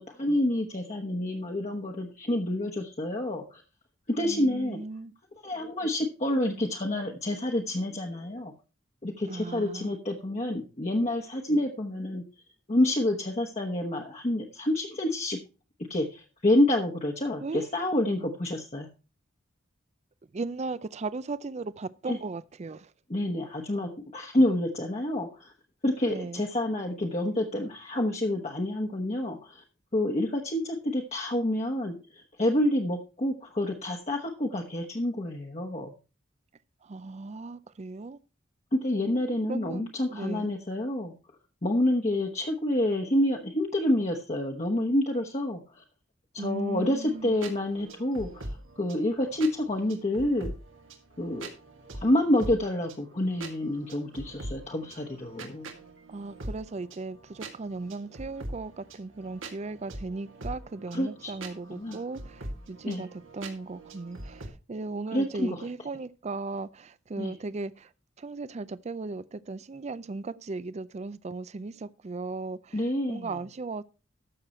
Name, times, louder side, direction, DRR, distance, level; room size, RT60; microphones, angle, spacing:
voice 1, 0.0-3.6 4.1-4.8 5.4-8.5 9.0-12.2 12.7-15.4 15.9-18.9 22.1-22.2 23.1-25.5 25.8-29.6 29.9-35.9 38.7-41.1 41.6-45.8 46.3-48.5 48.8-50.5 51.2-51.5 51.9-55.7 60.9-61.3 61.7-62.0 62.9-63.1 65.1-65.6 67.2-67.3 72.7-73.3, left 1 dB, 35° left, 1.1 m, -28 dB
voice 2, 4.2-5.1 9.3-9.9 17.4-17.8 20.3-22.9 26.1-26.4 36.8-38.2 39.5-40.5 46.4-47.3 56.1-67.9 68.2-73.8, right 3 dB, 35° right, 0.4 m, -37 dB
sound 1, 47.1-64.5, right 1 dB, 85° right, 2.2 m, -43 dB
13.5 x 6.5 x 4.3 m
head